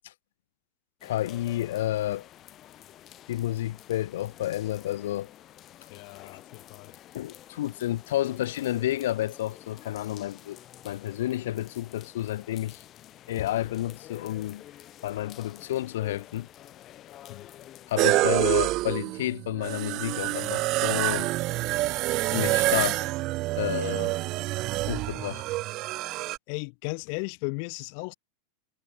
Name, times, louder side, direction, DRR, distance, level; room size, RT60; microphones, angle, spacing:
voice 1, 1.0-2.3 3.3-5.3 7.1-10.6 10.8-12.8 13.3-14.6 15.0-16.5 17.9-21.3 22.3-23.1 23.6-24.2 24.9-25.4, left 14 dB, 85° left, 1.8 m, -30 dB
sound 1, 1.0-18.3, left 13 dB, 25° left, 5.0 m, -49 dB
voice 2, 5.9-7.0 17.3-17.5 26.5-28.1, left 40 dB or more, 45° left, 2.9 m, -36 dB
sound 2, 18.0-26.4, right 19 dB, 35° right, 0.5 m, -27 dB
supercardioid pair, 170°, 0 cm